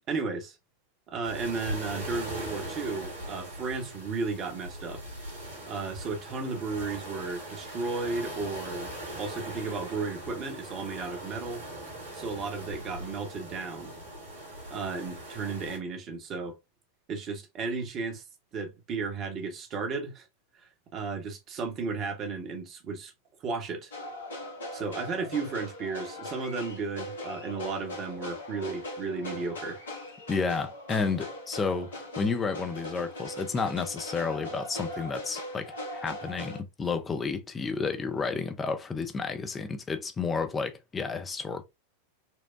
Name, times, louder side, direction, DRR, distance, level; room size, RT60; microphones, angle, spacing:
voice 1, 0.1-0.6 1.1-5.0 5.6-11.6 12.1-13.9 14.7-16.6 17.1-18.2 18.5-20.3 20.6-23.1 23.4-23.9 24.7-29.8, right 4 dB, 35° right, 1.1 m, -34 dB
sound 1, 1.2-15.8, right 1 dB, 65° right, 2.0 m, -40 dB
sound 2, 23.9-36.6, left 1 dB, 65° left, 1.1 m, -40 dB
voice 2, 30.3-35.7 36.0-41.6, left 4 dB, 15° left, 0.6 m, -31 dB
4.5 x 2.2 x 2.5 m
figure-of-eight pair, 90°, 0 cm